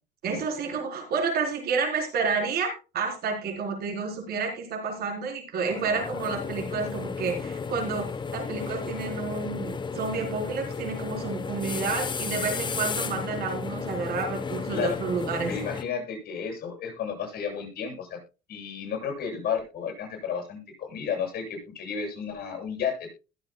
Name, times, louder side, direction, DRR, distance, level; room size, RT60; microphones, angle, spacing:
voice 1, 0.2-8.1 8.3-15.5, right 4 dB, 65° right, 3 dB, 4.1 m, -30 dB
sound 1, 5.7-15.8, left 5 dB, 25° left, 1.0 m, -33 dB
voice 2, 15.5-18.2 18.5-23.1, left 7 dB, 65° left, 2 dB, 7.7 m, -32 dB
20.5 x 7.6 x 2.3 m, 0.30 s
cardioid pair, 110°, 17 cm